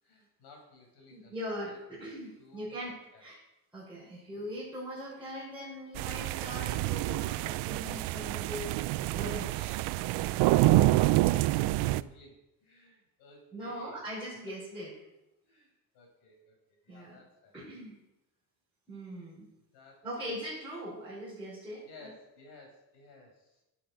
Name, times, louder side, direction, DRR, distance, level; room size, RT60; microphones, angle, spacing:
voice 1, 0.0-1.4 1.6-1.8 2.4-3.2 10.7-14.1 14.5-14.6 15.4-17.6 19.7-20.4 21.9-23.6, left 2 dB, 70° left, 1 dB, 5.4 m, -56 dB
voice 2, 1.1-2.9 3.2-3.4 3.7-8.7 9.1-9.9 13.5-14.9 16.9-17.2 17.5-18.0 18.9-19.5 20.0-22.1, equal, 5° right, -11 dB, 5.7 m, -41 dB
sound 1, 5.9-12.0, right 16 dB, 75° right, 0.6 m, -27 dB
11.5 x 8.6 x 6.5 m, 0.91 s
cardioid pair, 160°, 41 cm